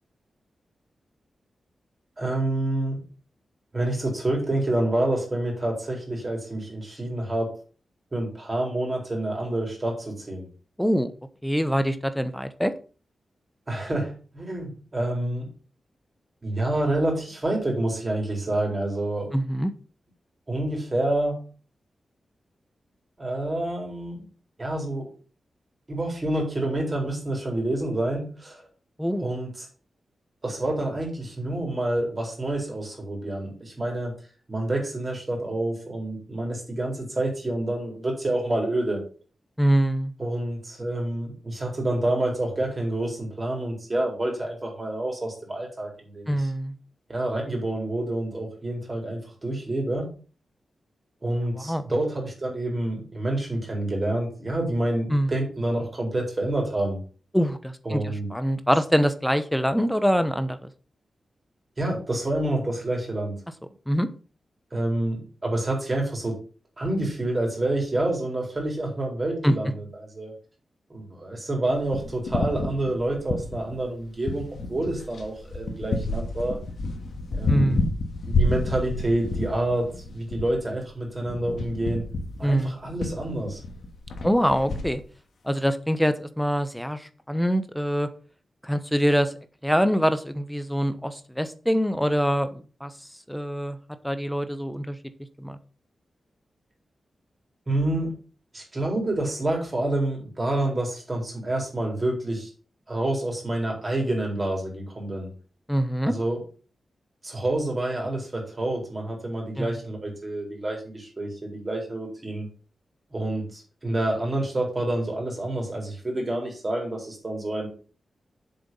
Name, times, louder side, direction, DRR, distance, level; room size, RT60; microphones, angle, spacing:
voice 1, 2.2-3.0 3.7-7.5 8.1-10.5 13.7-15.5 16.4-19.3 20.5-21.4 23.2-24.2 24.6-25.1 25.9-28.6 29.2-29.7 30.4-34.1 34.5-39.0 40.2-46.5 47.1-50.1 51.2-57.0 57.8-58.3 61.8-63.4 64.7-66.4 66.8-70.3 70.9-76.6 77.4-77.8 78.3-82.1 82.4-83.6 97.7-98.1 98.5-102.5 102.9-105.3 106.1-106.4 107.2-112.5 113.1-117.7, right 1 dB, 25° right, 0 dB, 4.2 m, -28 dB
voice 2, 10.8-11.1 11.4-12.7 19.3-19.7 29.0-29.3 39.6-40.1 46.3-46.7 51.6-51.8 55.1-55.3 57.3-60.7 63.9-64.1 69.4-69.6 77.5-77.9 82.4-82.7 84.2-85.0 85.4-88.1 88.6-89.3 89.6-92.9 93.3-93.8 94.0-95.0 95.4-95.6 105.7-106.1 109.6-109.7, equal, ahead, 10 dB, 0.9 m, -24 dB
sound 1, 71.7-73.9 74.2-84.9, left 2 dB, 70° left, 2.0 m, -29 dB
7.6 x 6.9 x 5.5 m, 0.38 s
wide cardioid pair, 145°, 0 cm